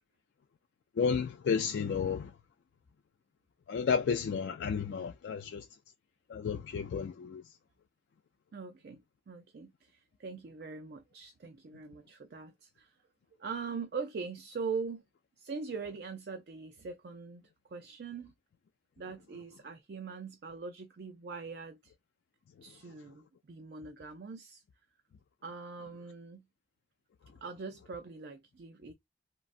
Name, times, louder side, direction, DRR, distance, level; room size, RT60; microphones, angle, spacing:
voice 1, 1.0-2.3 3.7-5.6 6.3-7.4, left 6 dB, 75° left, 0.3 m, -32 dB
voice 2, 8.5-9.0 9.3-13.0 13.4-15.0 15.4-18.3 19.0-21.9 22.6-24.6 25.4-26.5 27.4-28.9, right 5 dB, 60° right, 0.4 m, -42 dB
3.7 x 2.1 x 2.4 m
head